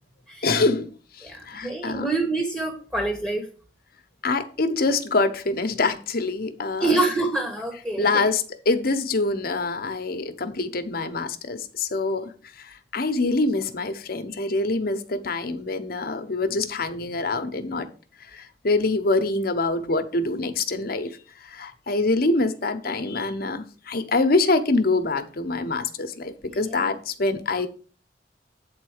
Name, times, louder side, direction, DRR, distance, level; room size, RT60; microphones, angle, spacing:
voice 1, 0.4-0.9 1.2-2.1 4.2-6.9 8.0-12.3 12.6-17.9 18.3-21.1 21.5-27.7, left 3 dB, 55° left, 1.0 m, -25 dB
voice 2, 1.2-3.5 6.8-8.3 26.5-26.9, right 2 dB, 10° right, 1.3 m, -26 dB
8.6 x 4.1 x 6.5 m
head